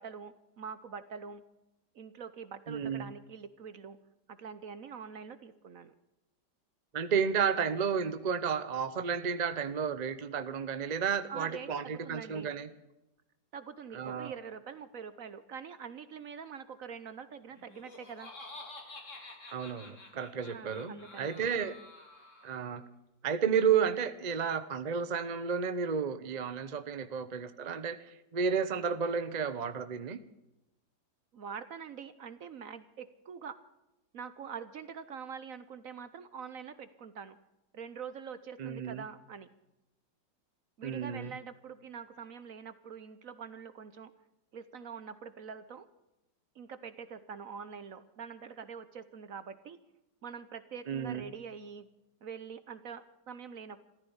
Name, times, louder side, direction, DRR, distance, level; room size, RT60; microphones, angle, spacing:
voice 1, 0.0-1.4 1.9-4.0 4.3-5.9 11.3-12.5 13.5-18.3 20.5-21.5 31.3-33.6 34.1-37.4 37.7-39.5 40.8-44.1 44.5-45.9 46.5-49.8 50.2-51.9 52.2-53.9, right 6 dB, 55° right, 13 dB, 1.1 m, -45 dB
voice 2, 2.7-3.1 6.9-12.7 13.9-14.3 19.5-21.8 22.4-22.8 23.2-30.2 38.6-39.0 40.8-41.3 50.9-51.2, right 6 dB, 35° right, 11 dB, 0.7 m, -32 dB
Laughter, 17.5-22.8, left 2 dB, 40° left, 2.9 m, -50 dB
15.0 x 13.5 x 7.1 m, 0.93 s
omnidirectional pair, 2.0 m